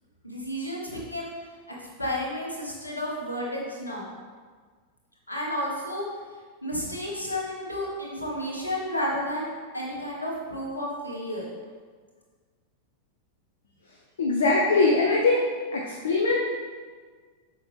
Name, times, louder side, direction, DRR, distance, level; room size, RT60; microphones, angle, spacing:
voice 1, 0.2-1.3 1.7-4.1 5.3-6.0 6.6-9.5 9.7-11.5, left 1 dB, 85° left, -3 dB, 1.7 m, -32 dB
voice 2, 14.2-15.4 15.7-16.4, left 3 dB, 65° left, -2 dB, 0.8 m, -22 dB
7.6 x 5.9 x 3.5 m, 1.5 s
figure-of-eight pair, 90°, 0 cm